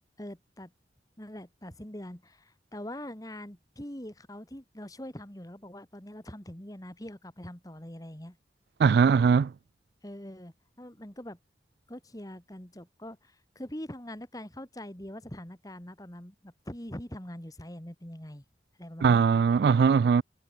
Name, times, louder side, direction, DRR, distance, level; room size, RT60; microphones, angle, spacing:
voice 1, 0.2-0.7 1.2-8.4 10.0-11.4 11.9-18.4 18.8-19.2, left 1 dB, 20° left, 2.3 m, -43 dB
voice 2, 8.8-9.5 19.0-20.2, right 6 dB, 70° right, 0.3 m, -21 dB
head